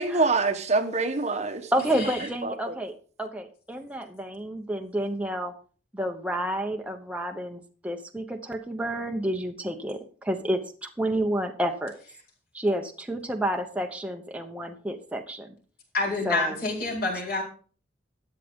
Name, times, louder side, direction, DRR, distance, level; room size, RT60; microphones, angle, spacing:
voice 1, 0.0-1.7 2.4-2.7, right 3 dB, 35° right, 1.1 m, -25 dB
voice 2, 1.7-2.9 3.2-5.5 5.9-11.9 12.5-15.5 16.2-16.6, right 1 dB, 5° right, 1.0 m, -30 dB
voice 3, 15.9-17.4, left 2 dB, 45° left, 4.5 m, -27 dB
13.0 x 9.3 x 3.7 m
head